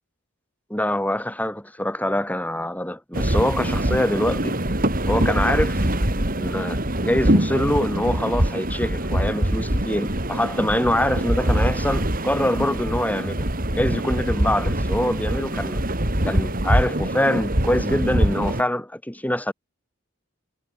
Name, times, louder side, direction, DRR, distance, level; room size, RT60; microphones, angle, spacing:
voice 1, 0.7-4.6 5.1-5.9 6.4-13.5 13.7-15.8 16.2-19.5, left 1 dB, 10° left, 4.6 m, -24 dB
sound 1, 3.1-18.6, right 1 dB, 45° right, 4.0 m, -23 dB
head